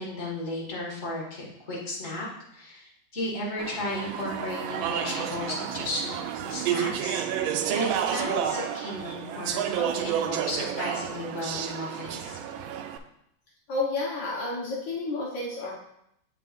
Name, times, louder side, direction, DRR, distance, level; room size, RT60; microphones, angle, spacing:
voice 1, 0.0-2.3 2.5-7.2 7.7-12.4, left 1 dB, 35° left, -4 dB, 2.0 m, -34 dB
Speech / Chatter, 3.6-13.0, right 9 dB, 85° right, 1.4 m, -30 dB
voice 2, 13.7-15.7, left 3 dB, 70° left, -5 dB, 2.0 m, -30 dB
7.9 x 6.7 x 2.5 m, 0.77 s
omnidirectional pair, 2.1 m